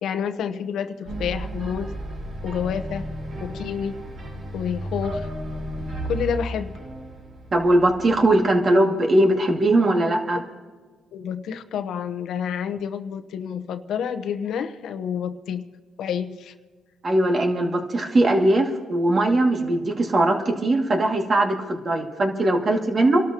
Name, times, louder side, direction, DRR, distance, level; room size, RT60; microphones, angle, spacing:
voice 1, 0.0-1.9 2.4-3.1 3.4-4.0 4.5-5.3 6.1-6.8 11.1-15.6 16.0-16.5, left 7 dB, 75° left, 10 dB, 0.9 m, -29 dB
sound 1, 1.1-8.3, right 1 dB, 60° right, 4.5 m, -33 dB
voice 2, 7.5-10.4 17.0-23.2, right 1 dB, 40° right, 2 dB, 2.3 m, -20 dB
28.0 x 12.5 x 3.0 m, 1.4 s
cardioid pair, 90°, 0 cm